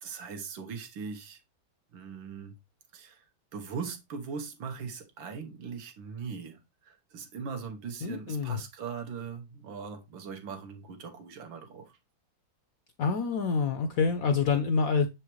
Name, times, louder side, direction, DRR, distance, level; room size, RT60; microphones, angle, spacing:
voice 1, 0.0-1.4 1.9-2.6 2.9-3.3 3.5-12.0, right 5 dB, 80° right, 1.8 m, -40 dB
voice 2, 8.0-8.6 13.0-15.1, left 5 dB, 70° left, 0.8 m, -27 dB
6.8 x 4.8 x 3.0 m
omnidirectional pair, 2.0 m